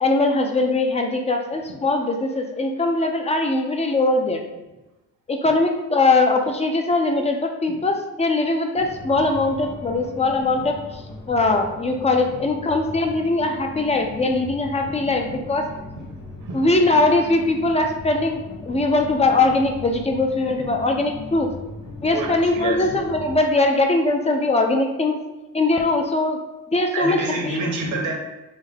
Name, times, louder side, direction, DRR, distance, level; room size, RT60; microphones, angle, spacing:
voice 1, 0.0-4.4 5.3-11.0 11.3-15.7 16.5-21.5 22.0-25.2 25.5-26.4 26.7-27.6, left 2 dB, 20° left, 4 dB, 0.5 m, -21 dB
sound 1, 8.7-23.4, left 2 dB, 90° left, 0.7 m, -38 dB
voice 2, 22.1-22.8 26.9-28.1, right 3 dB, 80° right, 1 dB, 0.9 m, -27 dB
3.6 x 2.1 x 3.6 m, 1.0 s
cardioid pair, 90°, 30 cm